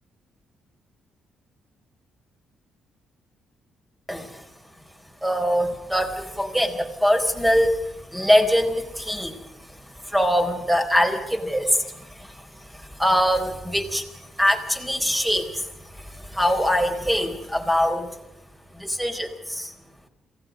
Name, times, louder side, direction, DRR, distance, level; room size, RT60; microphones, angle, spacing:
voice 1, 4.1-4.5 5.2-18.2 18.7-19.7, equal, 5° right, 6 dB, 4.3 m, -23 dB
28.0 x 17.5 x 5.3 m, 0.94 s
cardioid pair, 90°, 0 cm